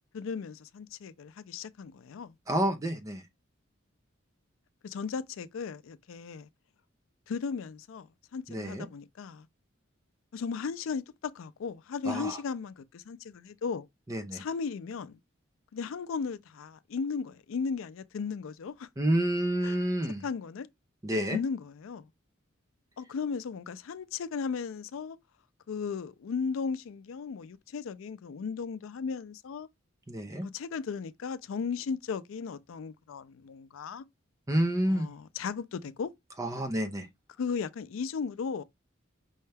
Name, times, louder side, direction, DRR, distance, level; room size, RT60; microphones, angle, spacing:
voice 1, 0.1-2.3 4.8-6.5 7.3-9.5 10.3-13.9 14.3-15.2 15.7-18.9 19.6-19.7 20.2-20.7 21.3-22.1 23.0-25.2 25.7-29.7 30.5-34.1 34.9-36.1 37.4-38.6, left 5 dB, 80° left, 0.4 m, -36 dB
voice 2, 2.5-3.2 8.5-8.9 12.1-12.4 14.1-14.4 19.0-20.2 21.0-21.4 30.1-30.5 34.5-35.1 36.4-37.1, right 1 dB, 15° right, 0.5 m, -29 dB
5.4 x 2.2 x 3.3 m
head